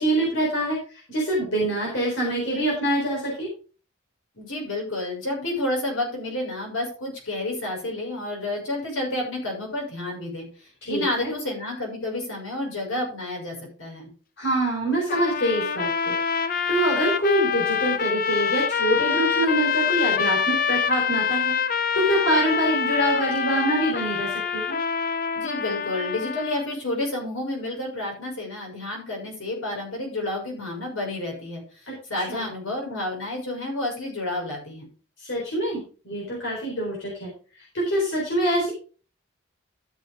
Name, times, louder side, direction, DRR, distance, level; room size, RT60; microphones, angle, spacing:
voice 1, 0.0-3.5 10.8-11.3 14.4-24.8 31.9-32.5 35.2-37.3 37.7-38.7, right 1 dB, 65° left, -3 dB, 4.2 m, -25 dB
voice 2, 4.3-14.1 25.3-34.9, left 1 dB, 85° left, 0 dB, 6.1 m, -30 dB
sound 1, 15.1-26.6, left 7 dB, 45° left, 0.6 m, -25 dB
13.0 x 7.1 x 3.7 m, 0.37 s
head